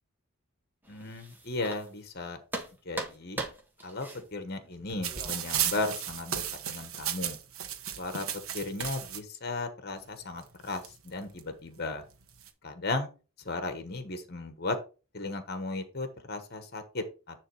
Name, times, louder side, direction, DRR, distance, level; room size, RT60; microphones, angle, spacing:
sound 1, 0.8-2.2 2.5-5.9, right 1 dB, 10° right, 1.3 m, -41 dB
voice 1, 0.9-2.4 2.8-3.4 3.8-7.4 8.0-8.3 8.5-12.0 12.6-13.1 13.4-14.8 15.1-17.4, left 2 dB, 50° left, 8 dB, 1.2 m, -35 dB
sound 2, 5.0-9.2 10.1-10.2 10.4-11.4 12.1-12.5, right 10 dB, 80° right, 1.3 m, -34 dB
10.0 x 3.4 x 4.7 m, 0.33 s
head